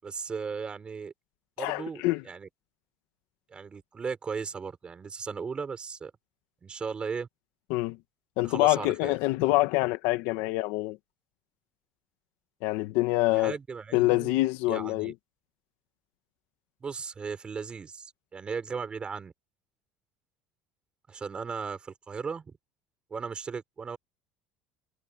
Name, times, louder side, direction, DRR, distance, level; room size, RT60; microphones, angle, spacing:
voice 1, 0.0-1.1 1.6-2.5 3.5-6.1 6.6-7.3 8.4-9.2 13.3-14.3 14.6-15.1 16.8-19.3 21.1-22.6 23.1-24.0, right 5 dB, 25° right, 6.4 m, -36 dB
voice 2, 1.6-2.2 7.7-8.0 8.4-11.0 12.6-13.6 13.9-15.1, left 19 dB, 75° left, 1.8 m, -26 dB
cardioid pair, 130°, 4 cm